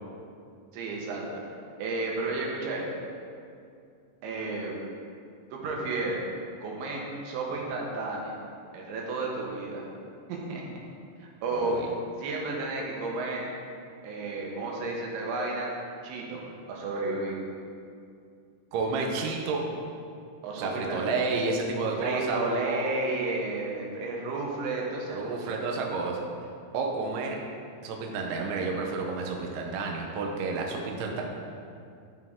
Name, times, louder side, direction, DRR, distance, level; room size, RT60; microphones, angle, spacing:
voice 1, 0.7-1.4 1.8-3.0 4.2-4.8 5.5-6.2 6.6-8.4 8.7-9.9 10.3-10.6 11.2-11.8 12.2-13.4 14.0-15.7 16.0-16.4 16.7-17.4 20.4-21.2 22.0-25.5, right 3 dB, 70° right, -2 dB, 3.3 m, -32 dB
voice 2, 18.7-19.6 20.6-22.4 22.7-22.9 25.1-26.2 26.7-27.4 27.8-31.2, right 4 dB, 85° right, 0 dB, 2.2 m, -30 dB
13.0 x 5.6 x 3.7 m, 2.4 s
omnidirectional pair, 5.9 m